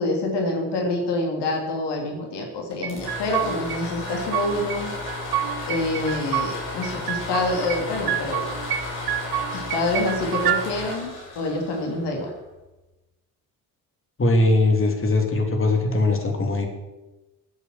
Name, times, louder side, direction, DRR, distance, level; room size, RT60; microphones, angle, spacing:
voice 1, 0.0-4.9 5.7-8.5 9.5-12.3, left 2 dB, 55° left, 1 dB, 2.7 m, -26 dB
sound 1, 2.7-12.5, left 2 dB, 70° left, 5.5 m, -34 dB
sound 2, 2.8-3.8 4.1-4.8 5.1-6.5 6.8-7.8 8.1-8.8 9.1-10.6, right 11 dB, 50° right, 1.1 m, -27 dB
voice 2, 14.2-16.7, left 2 dB, 25° left, 3 dB, 3.0 m, -20 dB
14.0 x 8.2 x 7.8 m, 1.1 s
figure-of-eight pair, 45°, 49 cm